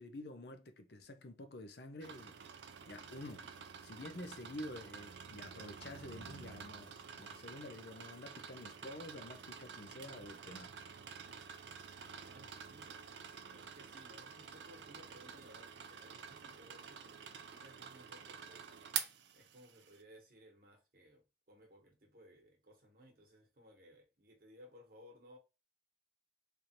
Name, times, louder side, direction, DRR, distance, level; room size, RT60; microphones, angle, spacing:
voice 1, 0.0-2.4 2.9-3.5 3.8-10.7, left 1 dB, 65° left, 0.6 m, -49 dB
sound 1, 2.0-20.0, right 7 dB, 75° right, 0.5 m, -49 dB
voice 2, 11.9-13.1 13.4-19.0 19.3-25.4, equal, 55° right, 1.3 m, -61 dB
3.4 x 2.6 x 4.4 m
head